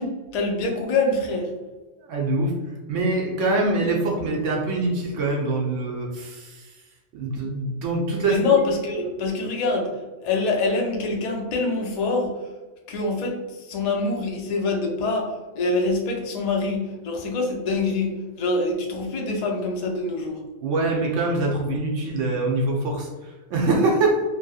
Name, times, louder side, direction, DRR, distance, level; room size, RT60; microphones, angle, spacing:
voice 1, 0.0-1.5 8.2-9.9 10.2-12.3 12.9-20.4, left 3 dB, 55° left, 0 dB, 0.4 m, -25 dB
voice 2, 2.0-2.5 2.9-6.7 7.1-8.4 20.6-24.2, right 2 dB, 75° right, -1 dB, 1.0 m, -24 dB
3.0 x 2.7 x 2.3 m, 1.2 s
omnidirectional pair, 1.3 m